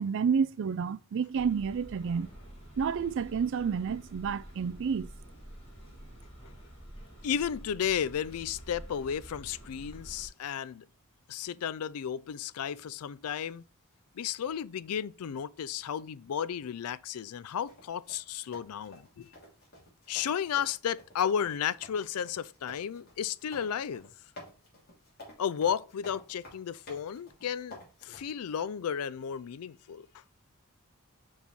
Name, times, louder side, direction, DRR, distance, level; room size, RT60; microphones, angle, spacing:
voice 1, 0.0-2.3 2.8-5.1, right 6 dB, 55° right, 0.4 m, -30 dB
sound 1, 1.3-10.3, equal, 25° left, 2.6 m, -48 dB
voice 2, 7.2-10.9 11.3-13.6 14.2-19.3 20.1-24.1 25.4-30.1, left 8 dB, 80° left, 0.4 m, -33 dB
sound 2, 17.7-28.2, left 1 dB, 45° left, 2.8 m, -51 dB
5.3 x 4.7 x 4.2 m
head